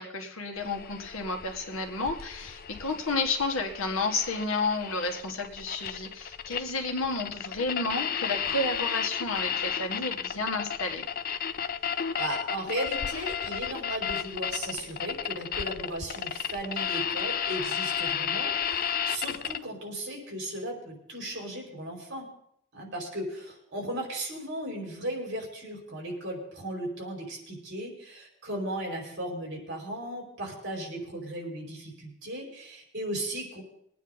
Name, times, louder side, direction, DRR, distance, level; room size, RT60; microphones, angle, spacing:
voice 1, 0.0-11.1, left 3 dB, 75° left, 4 dB, 1.7 m, -31 dB
sound 1, 0.6-19.6, left 8 dB, 45° left, 0.5 m, -33 dB
voice 2, 11.9-22.3 22.7-33.6, right 1 dB, 55° right, -1 dB, 4.8 m, -36 dB
22.0 x 9.3 x 4.0 m, 0.72 s
head